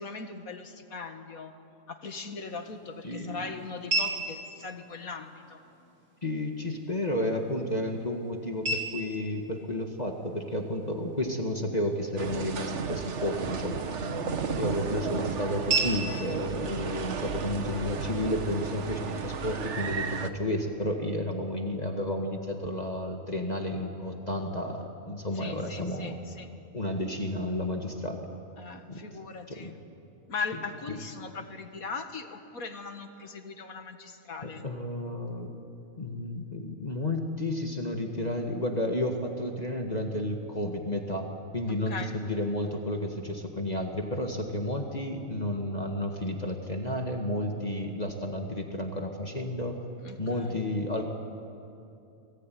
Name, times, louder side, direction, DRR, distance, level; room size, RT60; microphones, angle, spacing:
voice 1, 0.0-1.5 1.9-5.6 25.3-26.5 28.6-29.8 30.3-34.7 41.7-42.2 50.0-50.6, left 4 dB, 85° left, 6 dB, 2.3 m, -39 dB
sound 1, 2.1-18.1, right 2 dB, 80° right, 4.2 m, -38 dB
voice 2, 3.0-3.4 6.2-26.2 26.7-28.3 28.9-29.0 29.5-29.7 34.4-35.6 36.0-41.3 41.5-49.8 50.2-51.1, left 1 dB, 30° left, 2 dB, 2.0 m, -32 dB
sound 2, 12.2-20.3, right 5 dB, 60° right, 1.4 m, -34 dB
29.5 x 21.0 x 9.4 m, 2.7 s
omnidirectional pair, 1.4 m